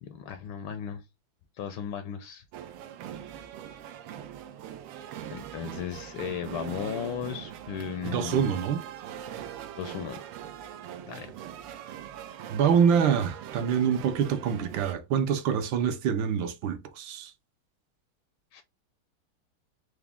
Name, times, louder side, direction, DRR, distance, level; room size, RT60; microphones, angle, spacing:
voice 1, 0.0-1.0 1.6-2.4 5.3-8.6 9.8-10.3 11.1-11.3 18.5-18.6, left 9 dB, 75° left, 1.3 m, -36 dB
sound 1, 2.5-14.9, right 10 dB, 90° right, 1.6 m, -41 dB
voice 2, 8.0-8.8 12.5-17.3, right 7 dB, 75° right, 1.2 m, -25 dB
4.6 x 2.1 x 3.4 m
omnidirectional pair, 2.4 m